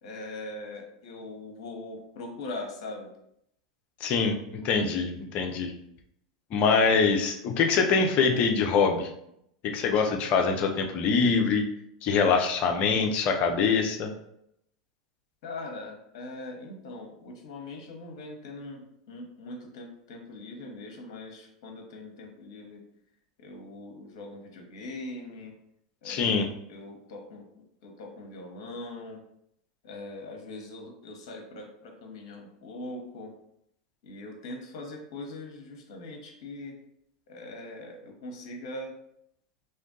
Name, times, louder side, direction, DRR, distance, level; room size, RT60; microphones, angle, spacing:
voice 1, 0.0-3.1 15.4-22.8 23.4-25.5 26.0-26.4 26.7-27.5 27.8-29.2 29.8-33.3 34.0-36.8 37.3-38.9, left 2 dB, 60° left, 1 dB, 0.9 m, -41 dB
voice 2, 4.0-5.7 6.5-9.1 9.6-11.6 12.0-14.1 26.0-26.5, left 5 dB, 45° left, 3 dB, 0.6 m, -24 dB
2.6 x 2.5 x 3.7 m, 0.75 s
hypercardioid pair, 90°, 3 cm